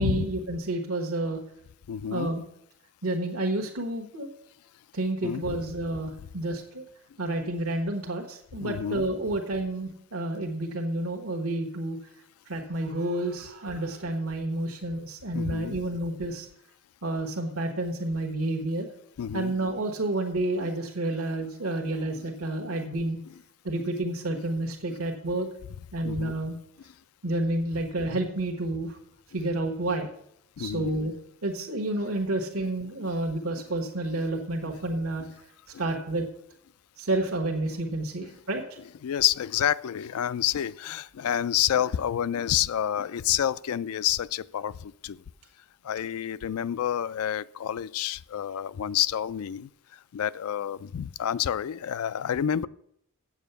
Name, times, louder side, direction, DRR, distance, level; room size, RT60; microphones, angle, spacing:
voice 1, 0.0-1.4 2.1-2.4 3.0-4.3 4.9-6.8 7.2-12.0 12.5-16.5 17.0-18.9 19.3-23.2 23.6-25.5 25.9-26.5 27.2-29.0 29.3-30.1 30.6-31.1 31.4-35.2 35.8-36.2 37.0-38.8, right 1 dB, 85° right, 2 dB, 1.2 m, -30 dB
voice 2, 1.9-2.3 5.2-5.6 8.6-9.1 15.3-15.8 19.2-19.5 22.2-22.3 22.7-22.8 23.2-23.3 24.9-25.0 26.0-26.3 30.6-30.9 33.0-33.2 35.7-35.9 38.2-38.3 39.0-45.2 45.8-49.7 50.1-52.7, left 10 dB, 90° left, 18 dB, 0.4 m, -29 dB
8.0 x 7.2 x 6.8 m, 0.71 s
head